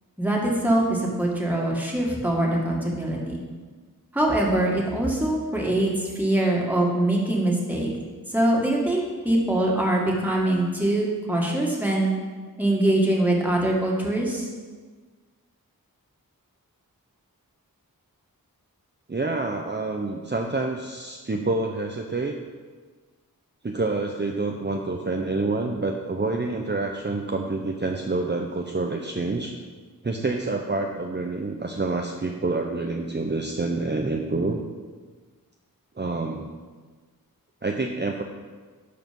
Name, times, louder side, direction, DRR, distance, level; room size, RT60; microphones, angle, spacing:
voice 1, 0.2-3.4 4.1-7.9 8.3-12.1 12.6-14.5, right 1 dB, 5° right, -3 dB, 2.0 m, -23 dB
voice 2, 19.1-22.4 23.6-29.5 30.0-34.6 36.0-36.5 37.6-38.2, right 3 dB, 30° right, 2 dB, 0.7 m, -27 dB
11.5 x 4.9 x 5.3 m, 1.4 s
wide cardioid pair, 60°, 35 cm